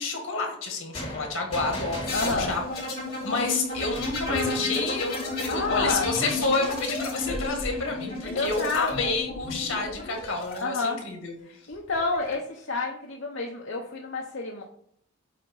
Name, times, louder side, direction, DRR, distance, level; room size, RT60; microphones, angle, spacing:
voice 1, 0.0-2.6 3.2-11.4, left 3 dB, 85° left, 2 dB, 2.0 m, -29 dB
sound 1, 0.9-4.3, left 1 dB, 25° left, 2.1 m, -39 dB
voice 2, 2.1-2.5 5.5-6.1 8.3-9.1 10.6-11.0 11.4-14.6, left 3 dB, 65° left, 0 dB, 0.8 m, -29 dB
sound 2, 2.1-10.6 11.7-12.3, left 2 dB, 45° left, 2.8 m, -33 dB
sound 3, 2.4-3.1 4.3-6.1 7.3-9.7, equal, ahead, 0.9 m, -42 dB
8.4 x 2.9 x 5.4 m, 0.68 s
head